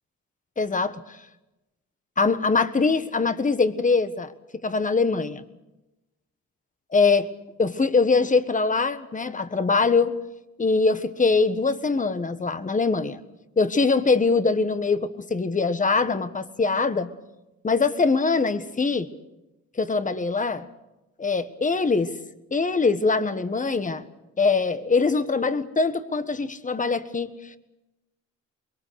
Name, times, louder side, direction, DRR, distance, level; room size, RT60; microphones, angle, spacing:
voice 1, 0.6-0.9 2.2-5.4 6.9-7.3 7.6-10.1 10.6-13.2 13.6-17.1 17.6-19.1 19.7-20.6 21.2-22.1 22.5-24.1 24.4-27.6, left 4 dB, 25° left, 12 dB, 1.4 m, -23 dB
24.5 x 22.0 x 6.5 m, 0.97 s
cardioid pair, 90°, 30 cm